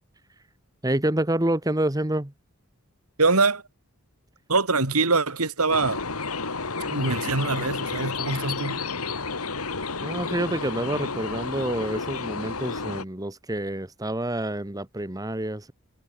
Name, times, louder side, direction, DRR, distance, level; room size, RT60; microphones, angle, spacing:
voice 1, 0.8-2.3 10.0-15.7, right 1 dB, 15° right, 1.2 m, -28 dB
voice 2, 3.2-3.6 4.5-6.0 6.8-8.8, right 3 dB, 90° right, 3.0 m, -23 dB
sound 1, 5.7-13.0, left 4 dB, 90° left, 2.7 m, -31 dB
head